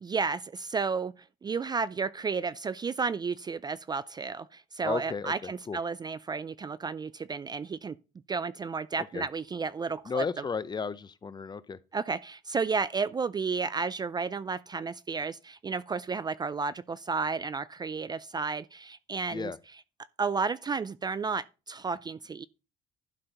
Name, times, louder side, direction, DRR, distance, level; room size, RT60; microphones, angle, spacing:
voice 1, 0.0-1.1 1.4-8.0 8.3-10.2 11.9-19.5 20.2-22.4, right 5 dB, 25° right, 0.4 m, -32 dB
voice 2, 4.8-5.8 9.0-9.3 10.0-11.8 19.3-19.6, left 5 dB, 25° left, 0.6 m, -34 dB
11.5 x 4.4 x 5.1 m
cardioid pair, 110°, 17 cm